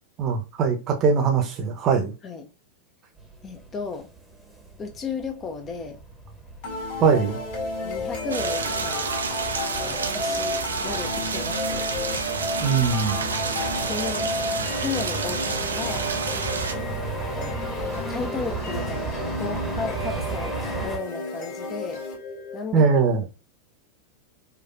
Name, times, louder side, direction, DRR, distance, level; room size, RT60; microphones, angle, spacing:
voice 1, 0.2-2.1 7.0-7.4 12.6-13.2 22.7-23.3, right 5 dB, 35° right, 0.7 m, -21 dB
sound 1, 3.2-21.0, right 2 dB, ahead, 0.8 m, -35 dB
voice 2, 3.4-4.1 4.8-6.0 7.0-7.1 7.8-9.1 9.8-11.9 13.8-14.3 14.8-16.1 17.3-22.0 22.5-22.9, left 5 dB, 25° left, 0.4 m, -34 dB
sound 2, 6.6-22.6, left 1 dB, 45° left, 1.3 m, -32 dB
sound 3, 8.3-16.7, right 5 dB, 70° right, 0.4 m, -30 dB
4.5 x 2.3 x 2.4 m
figure-of-eight pair, 90°, 0 cm